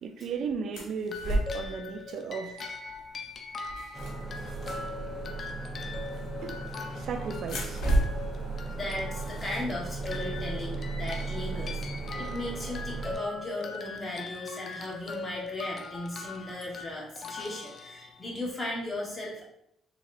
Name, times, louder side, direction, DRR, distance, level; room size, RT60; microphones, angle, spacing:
voice 1, 0.0-2.6 6.4-6.6 7.0-7.8, right 5 dB, 65° right, 7 dB, 0.4 m, -35 dB
sound 1, 0.7-1.8 2.9-3.0 3.3-4.8 6.2-6.8 7.4-10.4, right 1 dB, 80° left, 1.2 m, -32 dB
sound 2, 1.0-18.5, left 4 dB, 45° left, 0.4 m, -41 dB
sound 3, 3.9-13.2, right 3 dB, 45° right, 1.2 m, -37 dB
voice 2, 8.7-11.8 12.2-19.5, left 1 dB, 25° left, -3 dB, 1.3 m, -36 dB
3.9 x 3.0 x 2.5 m, 0.74 s
cardioid pair, 100°, 0 cm